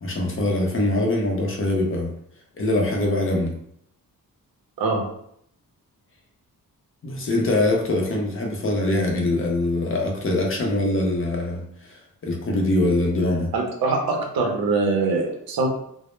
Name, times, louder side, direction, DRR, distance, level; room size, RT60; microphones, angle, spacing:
voice 1, 0.0-2.1 2.6-3.5 7.0-13.5, left 2 dB, 35° left, 0 dB, 0.5 m, -23 dB
voice 2, 4.8-5.1 13.5-15.7, right 3 dB, 85° right, 1 dB, 0.6 m, -23 dB
2.0 x 2.0 x 3.0 m, 0.71 s
wide cardioid pair, 150°, 35 cm